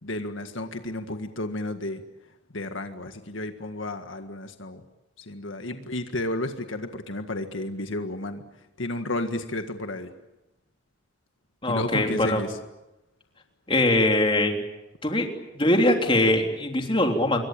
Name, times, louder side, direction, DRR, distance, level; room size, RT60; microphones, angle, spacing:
voice 1, 0.0-2.0 2.5-4.8 5.2-8.4 8.8-10.1 11.7-12.6, left 1 dB, 80° left, 7 dB, 1.8 m, -32 dB
voice 2, 11.6-12.4 13.7-14.6 15.0-15.3 15.5-17.5, left 1 dB, 25° left, 3 dB, 3.3 m, -22 dB
26.5 x 23.0 x 8.9 m, 0.96 s
head